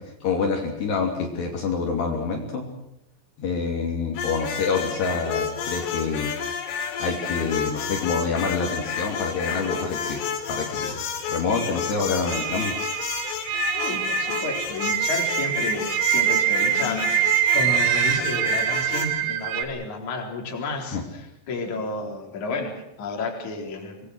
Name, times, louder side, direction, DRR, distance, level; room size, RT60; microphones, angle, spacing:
voice 1, 0.0-2.6 3.4-6.3 7.0-12.7 20.9-21.0, left 4 dB, 60° left, 0 dB, 4.8 m, -27 dB
sound 1, 4.2-19.1, left 7 dB, 90° left, 5.5 m, -30 dB
sound 2, 12.3-19.6, right 12 dB, 90° right, 4.5 m, -24 dB
voice 2, 13.8-24.0, left 3 dB, 40° left, 1 dB, 4.8 m, -31 dB
Gasp, 16.6-17.2, left 5 dB, 25° left, 6.0 m, -35 dB
26.5 x 20.5 x 6.4 m, 0.82 s
omnidirectional pair, 5.6 m